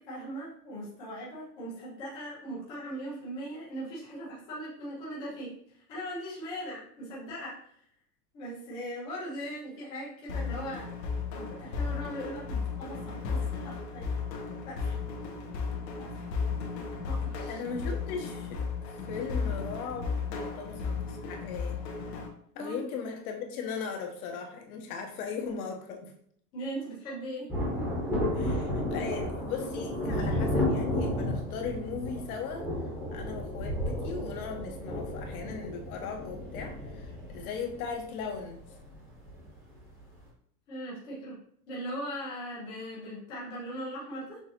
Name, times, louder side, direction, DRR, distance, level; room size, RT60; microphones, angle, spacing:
voice 1, 0.0-7.7 8.3-10.9 11.3-14.2 14.6-15.0 16.0-16.3 17.0-17.6 22.5-22.8 26.5-27.5 40.7-41.4 41.7-44.4, equal, 10° left, -7 dB, 0.3 m, -39 dB
sound 1, 10.3-22.3, left 5 dB, 85° left, 1.2 m, -34 dB
voice 2, 17.5-18.7 19.1-21.8 22.5-26.1 28.3-32.7 33.1-38.6, left 5 dB, 60° left, 4 dB, 0.9 m, -38 dB
Thunder, 27.5-39.5 39.7-39.8, left 1 dB, 5° right, 0.9 m, -32 dB
6.2 x 2.5 x 2.8 m, 0.64 s
supercardioid pair, 155°, 49 cm